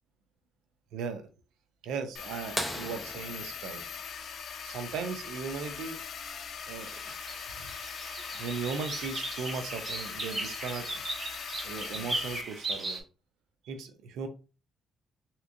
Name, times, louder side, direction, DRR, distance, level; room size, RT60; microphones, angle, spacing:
voice 1, 0.9-1.3 1.8-3.8 4.6-6.0 6.7-7.1 7.6-7.7 8.3-11.0 11.6-13.0 13.6-14.3, right 5 dB, 85° right, 0.5 m, -37 dB
sound 1, 2.1-12.4, left 7 dB, 60° left, 0.5 m, -41 dB
sound 2, 2.6-5.0 6.9-7.0 9.3-9.4 11.1-11.3 12.1-12.2, equal, ahead, 0.7 m, -38 dB
sound 3, 6.7-13.0, right 2 dB, 30° right, 1.0 m, -38 dB
3.5 x 2.9 x 2.5 m
cardioid pair, 90°, 0 cm